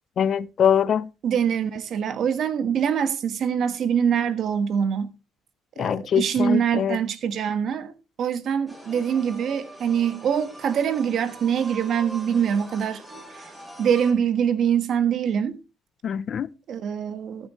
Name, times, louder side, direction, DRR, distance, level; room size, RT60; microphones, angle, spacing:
voice 1, 0.2-1.1 5.8-7.0 16.0-16.5, left 8 dB, 45° left, 0.6 m, -23 dB
voice 2, 1.2-5.1 5.8-7.9 8.2-13.5 13.8-15.6 16.7-17.5, right 8 dB, 55° right, 1.4 m, -24 dB
sound 1, 8.7-14.1, right 2 dB, 10° right, 6.3 m, -42 dB
14.0 x 9.5 x 3.1 m
cardioid pair, 105°, 0 cm